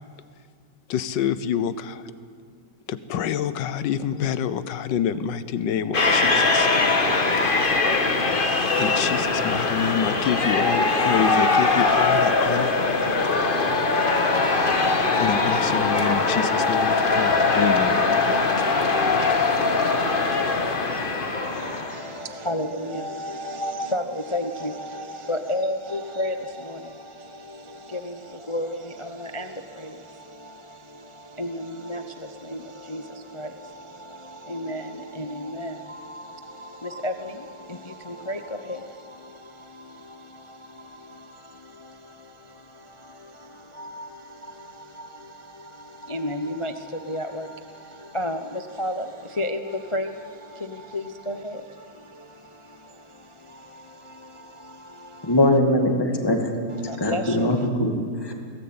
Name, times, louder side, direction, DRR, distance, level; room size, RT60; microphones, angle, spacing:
voice 1, 0.9-2.0 2.9-6.7 8.8-13.2 15.2-18.0 18.6-18.7, left 8 dB, 70° left, 1.5 m, -27 dB
sound 1, 5.9-22.2, left 3 dB, 30° left, 1.4 m, -21 dB
voice 2, 21.4-55.4 56.8-57.7, left 1 dB, 50° left, 0.3 m, -34 dB
voice 3, 55.2-56.5 57.0-58.3, left 1 dB, 10° left, 2.0 m, -21 dB
22.5 x 17.5 x 8.8 m
omnidirectional pair, 2.0 m